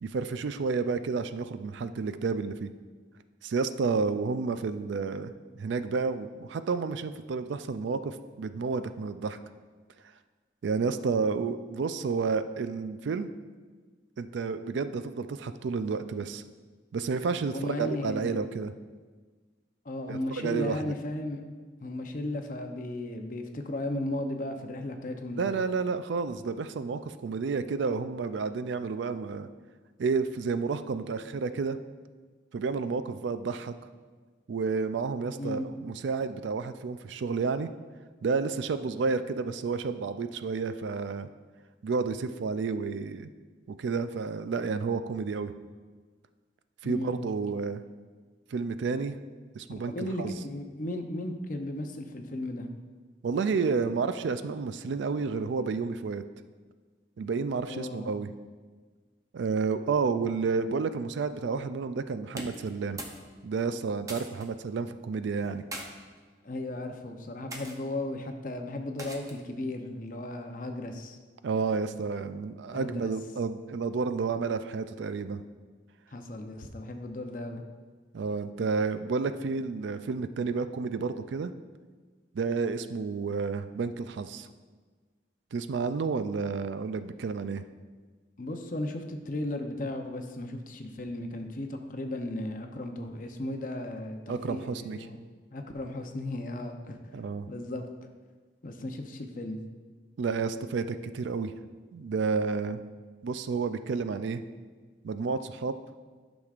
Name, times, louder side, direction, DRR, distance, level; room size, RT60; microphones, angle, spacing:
voice 1, 0.0-2.7 3.4-9.4 10.6-13.3 14.2-16.4 16.9-18.7 20.1-20.9 25.3-29.5 30.0-31.8 32.5-33.7 34.5-37.7 38.2-41.3 41.8-43.3 43.7-45.5 46.8-47.8 48.5-49.2 49.5-50.3 53.2-56.2 57.2-58.3 59.3-63.0 63.4-65.6 71.4-75.4 78.1-81.5 82.3-84.5 85.5-87.6 94.3-95.1 97.1-97.5 100.2-101.5 101.9-102.8 103.2-104.4 105.0-105.7, right 4 dB, 80° right, 11 dB, 0.4 m, -30 dB
voice 2, 17.5-18.4 19.8-21.4 21.8-25.5 35.3-35.7 46.8-47.2 49.7-52.7 57.7-58.1 66.4-71.2 72.7-73.1 76.1-77.6 88.4-95.2 95.5-97.0 97.5-97.9 98.6-99.6, left 1 dB, 45° left, 5 dB, 0.6 m, -35 dB
sound 1, 62.4-63.2 63.5-64.5 65.4-65.9 66.6-66.9 67.5-67.8 69.0-69.5, right 1 dB, 20° right, 0.6 m, -41 dB
11.5 x 6.1 x 2.4 m, 1.4 s
head